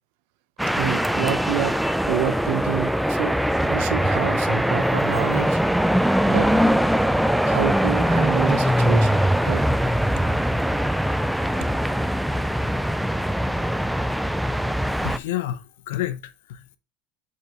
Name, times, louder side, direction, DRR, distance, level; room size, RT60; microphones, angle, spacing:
sound 1, 0.6-15.2, equal, ahead, 0.3 m, -22 dB
voice 1, 0.8-1.8 2.1-3.4 3.7-5.6 6.3-6.5 7.4-9.6, right 12 dB, 70° right, 0.7 m, -28 dB
voice 2, 15.0-16.8, left 13 dB, 90° left, 0.7 m, -30 dB
6.6 x 5.3 x 3.0 m
supercardioid pair, 135°, 0 cm